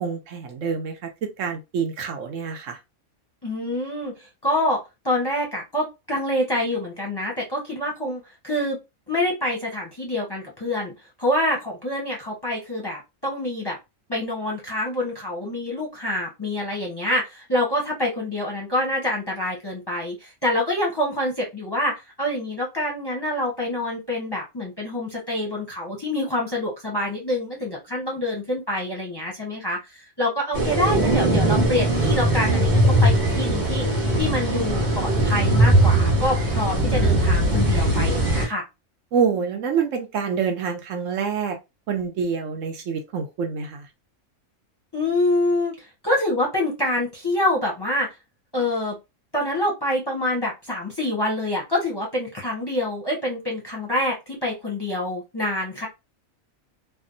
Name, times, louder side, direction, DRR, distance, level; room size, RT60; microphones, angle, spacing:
voice 1, 0.0-2.8 39.1-41.6 41.9-43.9, right 6 dB, 70° right, 0.9 m, -26 dB
voice 2, 3.4-4.8 5.0-8.8 9.1-10.9 11.2-13.8 14.1-38.6 44.9-48.1 48.5-48.9 49.3-55.9, left 1 dB, 20° left, 0.7 m, -26 dB
sound 1, 30.5-38.5, right 1 dB, 35° right, 1.2 m, -20 dB
3.4 x 2.0 x 2.5 m
omnidirectional pair, 1.4 m